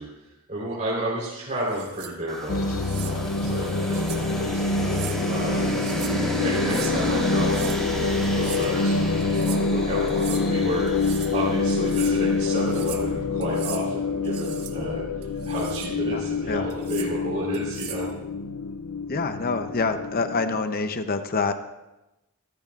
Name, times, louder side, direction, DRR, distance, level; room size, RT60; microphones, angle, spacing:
voice 1, 0.0-5.8 6.1-15.0 15.5-18.1, right 1 dB, 35° right, -7 dB, 3.8 m, -32 dB
sound 1, 1.6-2.1 2.8-3.1 3.9-4.2 4.8-5.2 5.6-6.2 6.5-6.9 7.4-7.8 8.2-8.7 9.2-9.6 10.1-10.4 10.9-11.4 11.7-12.1 12.6-13.1 13.4-13.8 14.2-14.7 15.2-15.9 16.7-17.1 17.5-18.1, right 10 dB, 80° right, 1.3 m, -39 dB
sound 2, 2.3-12.6, right 1 dB, ahead, 3.4 m, -33 dB
sound 3, 2.5-20.6, left 3 dB, 85° left, 0.7 m, -26 dB
voice 2, 16.1-16.6 19.1-21.5, left 4 dB, 45° left, 8 dB, 0.8 m, -26 dB
27.0 x 14.5 x 2.5 m, 0.99 s
head